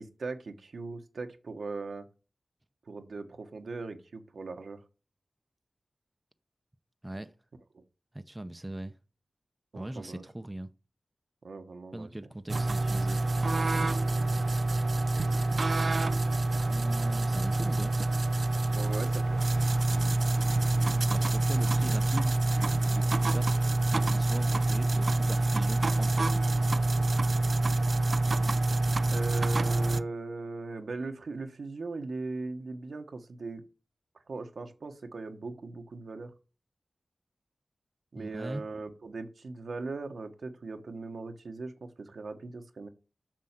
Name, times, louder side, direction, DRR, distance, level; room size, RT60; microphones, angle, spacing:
voice 1, 0.0-2.1 2.9-4.8 7.7-7.8 9.7-10.2 11.4-12.3 18.7-19.4 29.1-33.6 34.3-36.3 38.1-42.9, right 3 dB, 80° right, 1.2 m, -39 dB
voice 2, 7.0-7.3 8.1-8.9 9.8-10.7 11.9-13.2 16.7-17.9 19.9-20.2 21.1-22.4 22.8-23.6 23.9-26.5 38.2-38.6, right 1 dB, 15° right, 0.7 m, -39 dB
sound 1, 12.5-30.0, right 2 dB, 55° right, 0.5 m, -26 dB
7.5 x 6.2 x 7.4 m
wide cardioid pair, 75°, 0 cm